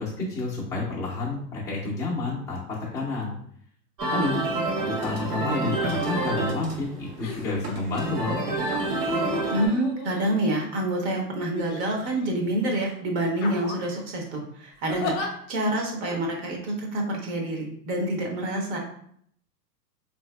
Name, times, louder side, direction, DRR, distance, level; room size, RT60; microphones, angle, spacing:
voice 1, 0.0-3.3 4.1-4.4 4.8-8.4, left 3 dB, 5° left, -8 dB, 0.5 m, -30 dB
sound 1, 4.0-9.7, right 2 dB, 75° right, 1.0 m, -28 dB
sound 2, 5.0-5.2 5.7-6.4 7.2-7.7 8.7-10.8 11.5-12.3 12.7-12.9 13.4-14.0 14.9-15.3 16.0-16.2, left 3 dB, 40° left, 0.7 m, -35 dB
voice 2, 9.5-18.8, right 1 dB, 40° right, 1 dB, 0.8 m, -27 dB
3.0 x 2.6 x 2.2 m, 0.65 s
hypercardioid pair, 105°, 50 cm